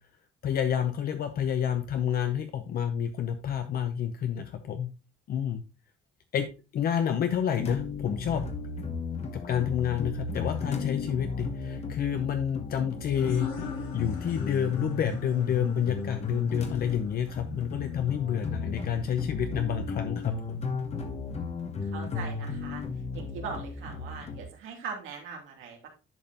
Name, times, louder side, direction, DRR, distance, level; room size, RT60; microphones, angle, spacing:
voice 1, 0.4-4.9 5.3-5.6 6.3-8.4 9.3-13.5 13.9-20.7, left 9 dB, 50° left, 8 dB, 0.7 m, -29 dB
sound 1, 7.5-24.4, left 4 dB, 30° left, 1.1 m, -35 dB
sound 2, 13.1-18.4, left 6 dB, 80° left, 2.7 m, -43 dB
voice 2, 21.4-22.8 23.1-25.9, right 5 dB, 85° right, 0 dB, 2.8 m, -41 dB
10.5 x 5.6 x 2.9 m, 0.30 s
cardioid pair, 170°, 20 cm